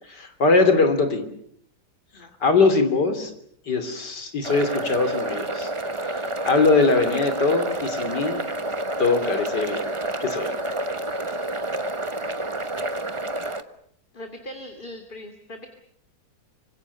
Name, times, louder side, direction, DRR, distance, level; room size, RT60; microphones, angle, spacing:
voice 1, 0.2-1.2 2.4-3.3 3.7-5.7 6.5-8.4 9.0-9.9 10.2-10.5, left 3 dB, 85° left, 8 dB, 3.6 m, -21 dB
sound 1, 4.4-13.6, right 1 dB, 20° right, 1.0 m, -29 dB
voice 2, 14.1-15.7, equal, 30° left, 5 dB, 2.4 m, -40 dB
26.5 x 25.5 x 6.9 m, 0.68 s
omnidirectional pair, 1.8 m